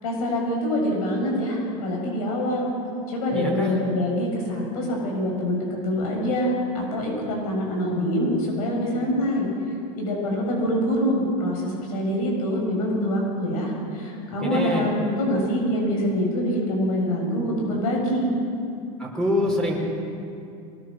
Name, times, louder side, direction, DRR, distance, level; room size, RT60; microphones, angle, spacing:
voice 1, 0.0-2.7 3.1-9.5 10.0-18.4, equal, 80° left, -1 dB, 7.4 m, -25 dB
voice 2, 3.3-3.7 14.4-14.8 19.0-19.8, equal, 5° left, -1 dB, 4.9 m, -25 dB
24.0 x 20.0 x 6.5 m, 2.5 s
supercardioid pair, 145°, 18 cm